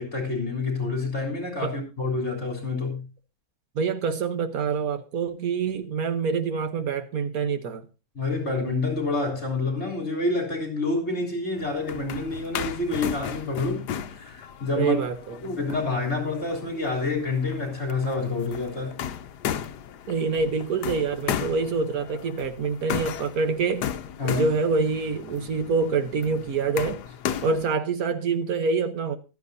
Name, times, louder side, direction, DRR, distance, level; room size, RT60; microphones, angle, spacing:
voice 1, 0.0-3.1 8.1-15.0 15.4-19.0 24.2-24.5, left 3 dB, 40° left, 3.8 m, -28 dB
voice 2, 3.7-7.8 14.7-15.4 20.1-23.9 24.2-27.0 27.4-29.2, right 5 dB, 60° right, 1.5 m, -26 dB
sound 1, 11.6-27.8, left 9 dB, 75° left, 1.3 m, -35 dB
15.5 x 12.5 x 2.7 m
omnidirectional pair, 1.8 m